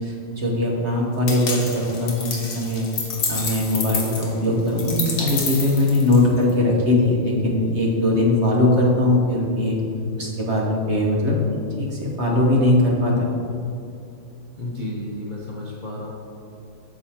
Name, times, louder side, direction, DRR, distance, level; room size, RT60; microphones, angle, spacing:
voice 1, 0.0-2.9 3.3-9.8 10.2-11.4 11.8-13.3, left 1 dB, 50° right, -3 dB, 0.9 m, -20 dB
sound 1, 1.3-6.5, left 4 dB, 50° left, 1.2 m, -29 dB
voice 2, 14.6-16.1, left 1 dB, 75° left, -5 dB, 0.4 m, -32 dB
8.5 x 7.2 x 2.8 m, 2.8 s
omnidirectional pair, 2.2 m